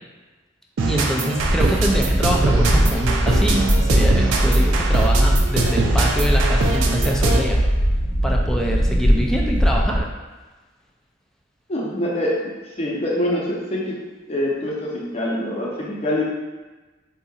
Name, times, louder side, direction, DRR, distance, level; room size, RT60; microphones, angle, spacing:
sound 1, 0.8-7.6, right 3 dB, 90° right, 0.4 m, -23 dB
voice 1, 0.9-7.6 8.2-10.1, equal, 5° left, -1 dB, 0.3 m, -25 dB
sound 2, 1.4-10.0, equal, 80° left, 0.7 m, -20 dB
voice 2, 11.7-12.4 12.8-14.0 14.3-16.2, left 1 dB, 35° left, -5 dB, 0.7 m, -24 dB
4.1 x 2.7 x 2.4 m, 1.2 s
head